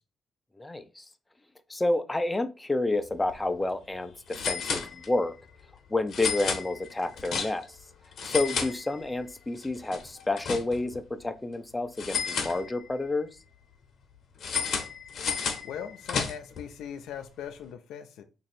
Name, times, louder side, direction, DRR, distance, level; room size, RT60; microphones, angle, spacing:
voice 1, 0.6-1.0 1.7-5.3 5.9-7.8 8.2-13.3, left 2 dB, 15° left, 0.5 m, -29 dB
sound 1, 3.1-3.3 3.6-3.7 4.3-5.3 6.1-7.8 8.1-9.3 9.6-11.0 12.0-13.1 14.4-16.6, left 6 dB, 60° left, 0.9 m, -32 dB
voice 2, 15.6-18.2, left 8 dB, 85° left, 0.4 m, -40 dB
3.0 x 2.6 x 4.2 m
cardioid pair, 90°, 0 cm